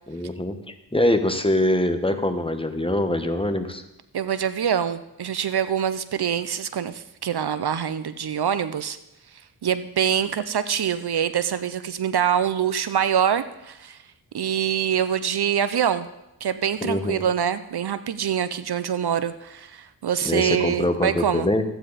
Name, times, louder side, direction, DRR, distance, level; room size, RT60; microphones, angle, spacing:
voice 1, 0.1-3.8 16.8-17.2 20.2-21.6, left 1 dB, 10° left, 7 dB, 1.3 m, -23 dB
voice 2, 4.1-9.0 9.6-14.0 14.3-16.1 16.4-21.5, right 8 dB, 65° right, 13 dB, 0.7 m, -25 dB
14.5 x 9.1 x 4.1 m, 0.88 s
cardioid pair, 45°, 43 cm